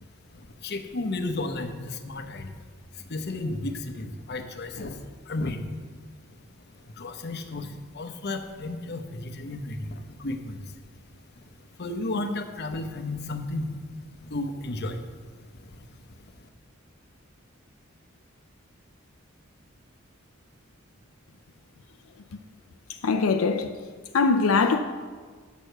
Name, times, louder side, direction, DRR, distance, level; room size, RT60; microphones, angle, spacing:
voice 1, 0.0-16.5, left 2 dB, 55° left, 0.8 m, -34 dB
voice 2, 23.0-23.7 24.1-24.8, left 4 dB, 80° left, 0.5 m, -21 dB
8.3 x 6.4 x 6.7 m
head